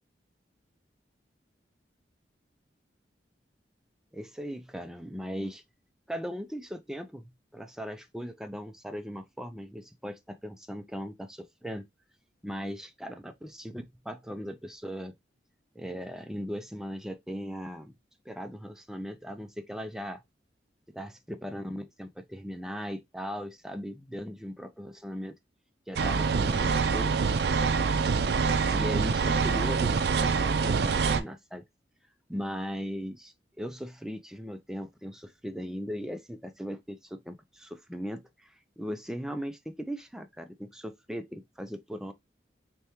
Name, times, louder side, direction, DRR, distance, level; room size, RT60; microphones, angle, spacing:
voice 1, 4.1-5.6 6.1-11.8 12.4-15.1 15.8-17.9 18.3-20.2 20.9-25.3 25.9-27.2 28.7-31.6 32.3-42.1, equal, 5° right, 0.4 m, -38 dB
sound 1, 26.0-31.2, right 5 dB, 65° right, 0.4 m, -25 dB
3.4 x 3.4 x 2.9 m
head